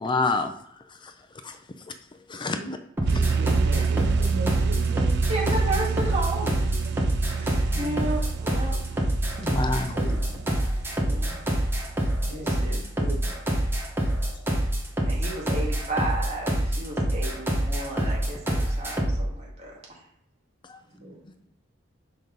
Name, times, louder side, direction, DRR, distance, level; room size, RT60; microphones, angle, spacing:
voice 1, 0.0-0.5 1.4-1.5 2.3-2.6 9.4-10.0, left 3 dB, 25° left, 7 dB, 0.5 m, -26 dB
sound 1, 3.0-19.3, right 1 dB, 10° right, 1.1 m, -26 dB
sound 2, 3.0-12.5, right 5 dB, 60° right, 0.4 m, -29 dB
voice 2, 3.1-5.2 7.7-7.9 9.9-10.4 11.0-11.4 12.2-13.4 20.9-21.4, right 1 dB, 85° right, -3 dB, 2.6 m, -38 dB
voice 3, 5.3-6.5 7.2-8.8 11.1-11.4 12.2-12.8 15.1-20.0, right 2 dB, 35° right, -4 dB, 2.0 m, -33 dB
6.0 x 5.2 x 3.9 m, 0.71 s
head